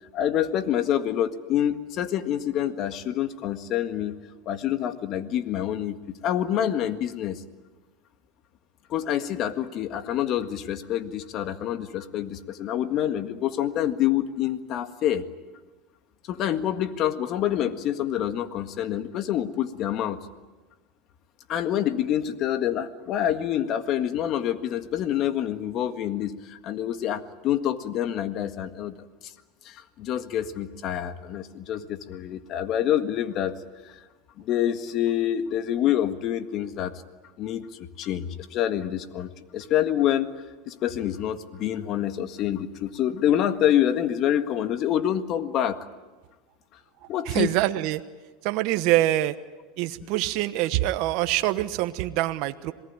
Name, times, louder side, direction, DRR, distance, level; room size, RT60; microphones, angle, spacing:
voice 1, 0.1-4.2 4.5-7.4 8.9-15.3 16.3-20.3 21.5-28.9 29.2-29.3 29.6-33.5 33.8-34.0 34.4-36.9 37.4-40.3 40.7-45.8 47.1-47.6 50.0-50.1, left 11 dB, 45° left, 9 dB, 1.7 m, -27 dB
voice 2, 47.3-48.0 48.4-49.3 49.8-52.7, right 15 dB, 60° right, 9 dB, 1.1 m, -25 dB
27.0 x 18.5 x 9.6 m, 1.2 s
supercardioid pair, 115°, 0 cm